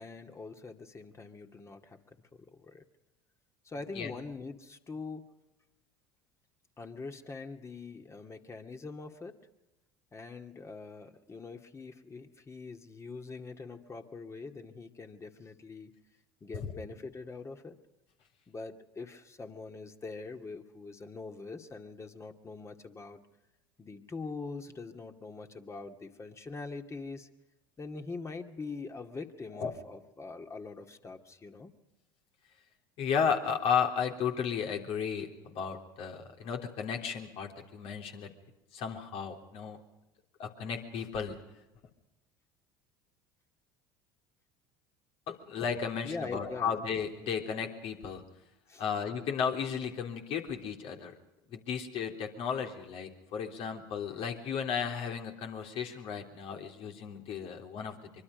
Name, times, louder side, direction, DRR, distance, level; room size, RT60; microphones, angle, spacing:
voice 1, 0.0-2.2 2.5-2.8 3.6-5.3 6.8-9.4 10.1-15.9 16.4-17.8 18.5-23.2 23.8-27.3 27.8-31.7 46.0-46.8 48.7-48.8, left 4 dB, 25° left, 5 dB, 2.3 m, -43 dB
voice 2, 33.0-38.3 38.7-39.8 40.4-41.4 45.3-48.2 48.8-51.1 51.5-57.9, left 7 dB, 55° left, 3 dB, 3.5 m, -34 dB
24.5 x 24.0 x 5.2 m, 0.97 s
hypercardioid pair, 70°, 11 cm